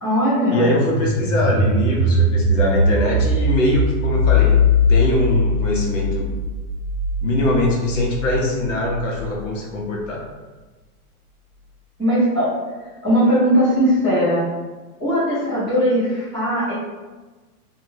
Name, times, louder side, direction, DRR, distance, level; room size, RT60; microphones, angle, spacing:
voice 1, 0.0-0.7 12.0-12.7 13.0-14.4 15.0-16.7, equal, ahead, -20 dB, 0.7 m, -19 dB
voice 2, 0.5-4.6 4.9-6.3 7.2-10.2, left 1 dB, 55° left, -3 dB, 0.7 m, -22 dB
sound 1, 0.7-9.4, left 2 dB, 50° right, 0.8 m, -20 dB
2.6 x 2.3 x 3.1 m, 1.3 s
supercardioid pair, 180°, 46 cm